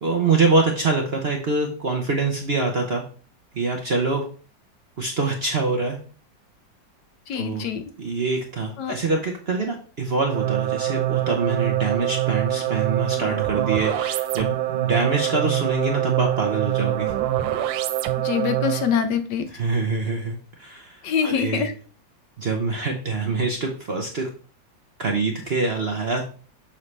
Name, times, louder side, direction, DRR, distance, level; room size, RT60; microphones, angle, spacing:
voice 1, 0.0-3.0 3.5-4.2 5.0-6.0 7.3-7.6 8.0-17.1 19.5-21.7 22.4-24.3 25.0-26.2, right 3 dB, 45° right, 2 dB, 0.8 m, -25 dB
voice 2, 7.3-7.9 8.8-8.9 18.2-19.5 21.0-21.7, left 7 dB, 70° left, 8 dB, 1.3 m, -24 dB
sound 1, 10.2-19.0, right 13 dB, 85° right, 1.3 m, -24 dB
7.2 x 5.6 x 3.2 m, 0.40 s
omnidirectional pair, 2.0 m